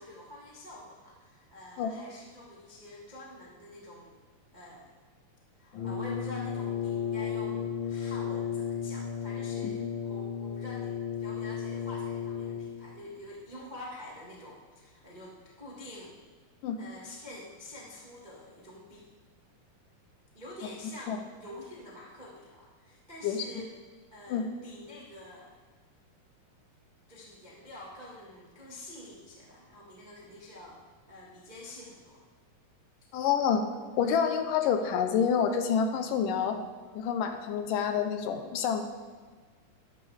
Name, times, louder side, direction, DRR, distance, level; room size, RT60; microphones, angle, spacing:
voice 1, 0.0-4.2 4.5-4.9 5.6-16.1 16.8-19.1 20.3-23.7 24.1-25.6 27.1-30.8 31.1-32.2, left 1 dB, 75° right, -5 dB, 0.4 m, -47 dB
Brass instrument, 5.7-12.9, left 8 dB, 60° left, 2.7 m, -34 dB
voice 2, 33.1-33.7 34.0-36.6 37.0-38.8, left 7 dB, 80° left, 7 dB, 2.2 m, -27 dB
13.0 x 9.9 x 3.4 m, 1.5 s
omnidirectional pair, 4.1 m